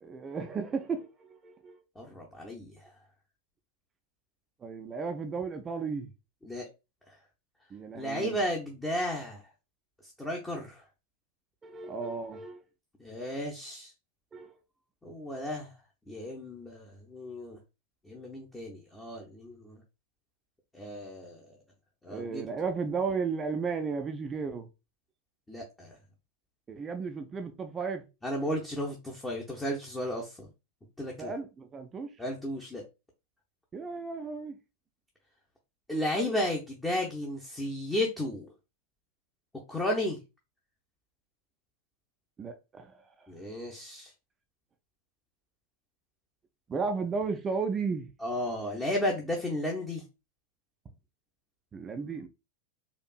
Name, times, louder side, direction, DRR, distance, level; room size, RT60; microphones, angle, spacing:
voice 1, 0.0-1.8 4.6-6.1 7.7-8.4 11.6-12.6 14.3-14.6 22.1-24.7 26.7-28.0 31.2-32.1 33.7-34.6 42.4-43.0 46.7-48.1 51.7-52.3, right 5 dB, 20° right, 0.4 m, -34 dB
voice 2, 2.0-2.9 6.4-6.7 7.1-7.2 7.9-9.5 10.0-10.9 13.0-13.9 15.0-15.8 16.1-17.6 18.0-19.8 20.7-21.6 22.0-22.5 25.5-26.0 28.2-30.5 31.0-31.3 32.2-32.8 35.9-38.5 39.7-40.2 43.3-44.1 48.2-50.0, left 1 dB, 10° left, 0.8 m, -34 dB
4.4 x 2.5 x 2.3 m
figure-of-eight pair, 90°, 0 cm